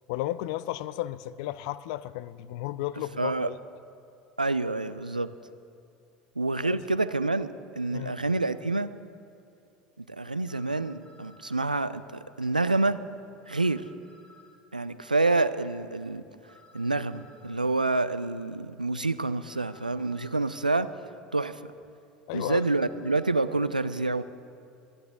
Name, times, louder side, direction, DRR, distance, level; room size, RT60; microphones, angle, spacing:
voice 1, 0.1-3.6 6.6-6.8 7.9-8.2 22.3-22.6, left 15 dB, 55° left, 17 dB, 0.4 m, -34 dB
voice 2, 3.2-3.5 4.4-5.3 6.4-8.9 10.0-13.0 13.5-13.8 14.7-16.2 16.7-20.9 21.3-21.6 22.3-24.2, right 2 dB, 90° right, 14 dB, 0.3 m, -27 dB
sound 1, 8.5-8.6 10.4-11.6 13.4-14.6 16.4-17.6 19.4-20.6 22.4-23.4, left 3 dB, 25° left, 2.2 m, -57 dB
23.5 x 9.9 x 3.6 m, 2.6 s
figure-of-eight pair, 70°, 4 cm